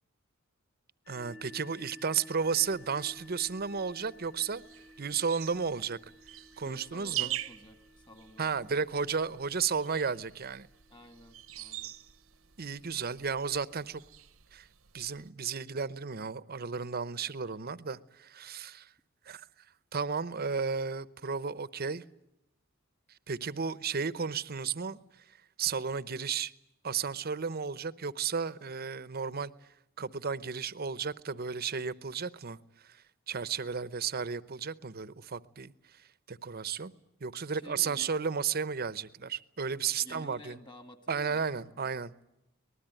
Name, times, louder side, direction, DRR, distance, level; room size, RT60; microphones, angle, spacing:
sound 1, 1.0-12.6, left 1 dB, 75° left, 6.8 m, -55 dB
voice 1, 1.1-4.6 5.0-6.0 6.6-7.3 8.4-10.7 12.6-14.0 14.5-14.7 14.9-18.9 19.3-19.4 19.9-22.0 23.3-25.0 25.6-26.5 26.8-29.5 30.0-32.6 32.8-35.7 36.3-36.9 37.2-40.6 41.1-42.1, right 6 dB, 45° right, 0.8 m, -33 dB
sound 2, 2.4-15.3, right 14 dB, 75° right, 1.0 m, -45 dB
voice 2, 6.6-8.9 10.9-11.9 37.5-38.1 40.0-41.8, equal, 20° left, 2.1 m, -52 dB
24.5 x 20.0 x 9.0 m
head